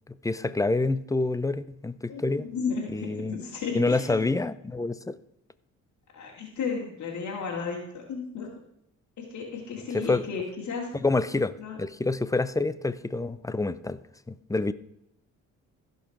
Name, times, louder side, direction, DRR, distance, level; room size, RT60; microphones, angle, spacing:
voice 1, 0.1-2.5 2.9-3.4 3.7-5.2 9.9-10.2 10.9-14.0 14.3-14.7, left 3 dB, 10° left, 15 dB, 0.6 m, -27 dB
voice 2, 2.1-4.3 6.1-8.5 9.2-10.9 11.6-11.8, left 5 dB, 70° left, -3 dB, 2.8 m, -34 dB
15.5 x 5.5 x 6.1 m, 0.79 s
cardioid pair, 90°, 30 cm